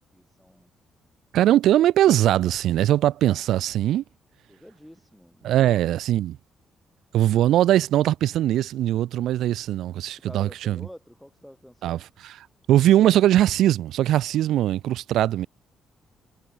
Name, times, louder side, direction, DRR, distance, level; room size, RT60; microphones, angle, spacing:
voice 1, 0.1-0.7 4.5-5.8 10.2-12.0, equal, 5° left, 1.9 m, -48 dB
voice 2, 1.3-4.0 5.4-6.4 7.1-10.9 11.8-12.4 12.7-15.5, right 13 dB, 80° right, 0.4 m, -21 dB
cardioid pair, 90°, 0 cm